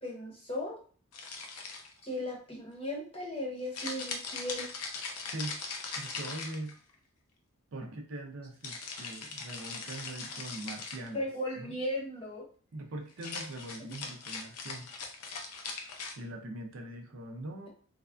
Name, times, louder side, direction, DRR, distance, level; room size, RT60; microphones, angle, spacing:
voice 1, 0.0-0.8 2.0-4.7 11.1-12.5, left 1 dB, 25° left, -2 dB, 0.8 m, -36 dB
sound 1, 1.1-2.1 3.7-6.9 8.6-11.1 13.1-16.1, left 4 dB, 85° left, 0.6 m, -40 dB
voice 2, 6.0-6.8 7.7-11.2 11.5-11.8 12.7-14.9 16.2-17.7, right 1 dB, 60° right, 3 dB, 0.5 m, -42 dB
3.3 x 2.2 x 2.4 m, 0.42 s
head